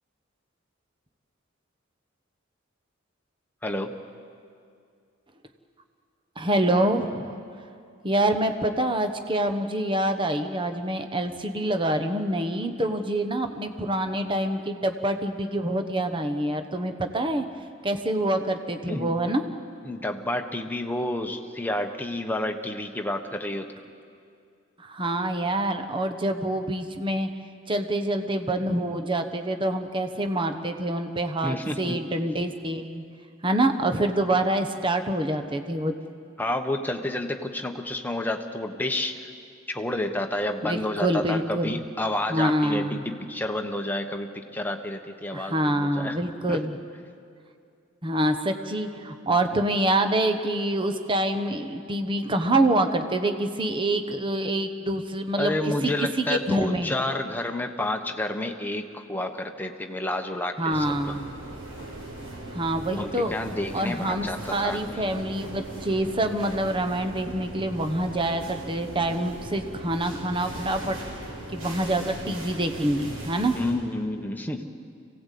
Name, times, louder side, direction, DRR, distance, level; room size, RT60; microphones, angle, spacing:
voice 1, 3.6-3.9 18.9-19.1 19.8-23.7 31.4-32.0 36.4-39.3 39.7-46.2 46.5-46.7 55.4-61.2 63.0-65.0 73.6-74.6, left 1 dB, 10° left, 4 dB, 1.2 m, -30 dB
voice 2, 6.4-7.3 8.0-17.4 17.8-19.4 24.8-27.3 27.7-33.0 33.4-35.9 40.6-41.8 42.3-43.0 45.3-46.8 48.0-55.5 55.8-56.9 60.6-61.3 62.5-63.3 63.7-71.0 71.5-73.6, right 1 dB, 25° right, 7 dB, 1.1 m, -26 dB
sound 1, 60.7-73.7, right 1 dB, 85° right, 6.2 m, -39 dB
26.0 x 17.5 x 8.5 m, 2.4 s
head